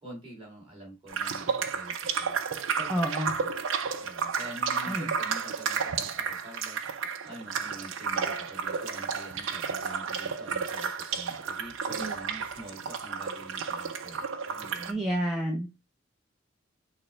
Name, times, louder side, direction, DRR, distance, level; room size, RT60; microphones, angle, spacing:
voice 1, 0.0-2.3 2.7-3.5 4.0-15.1, right 1 dB, 25° right, -3 dB, 2.1 m, -46 dB
sound 1, 1.1-14.9, right 6 dB, 90° right, 0.5 m, -32 dB
voice 2, 2.9-3.3 4.8-5.1 12.0-12.1 14.8-15.7, right 1 dB, ahead, -1 dB, 0.5 m, -29 dB
6.3 x 2.2 x 3.1 m, 0.26 s
head